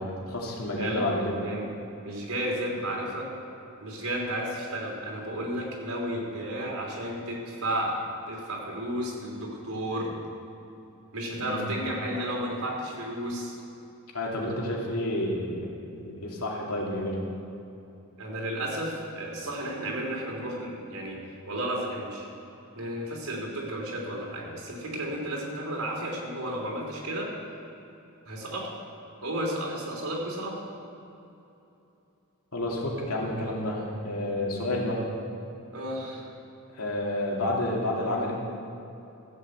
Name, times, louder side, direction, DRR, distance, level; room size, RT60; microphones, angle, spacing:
voice 1, 0.0-1.4 11.3-11.7 14.1-17.2 32.5-35.0 36.7-38.4, left 1 dB, 85° left, -3 dB, 2.8 m, -30 dB
voice 2, 2.0-3.3 3.8-8.0 8.3-10.2 11.1-13.6 18.2-21.2 21.5-22.3 22.8-27.3 28.2-28.7 29.2-30.6 35.7-36.3, right 1 dB, 80° right, -2 dB, 3.4 m, -33 dB
14.5 x 7.9 x 8.0 m, 2.9 s
head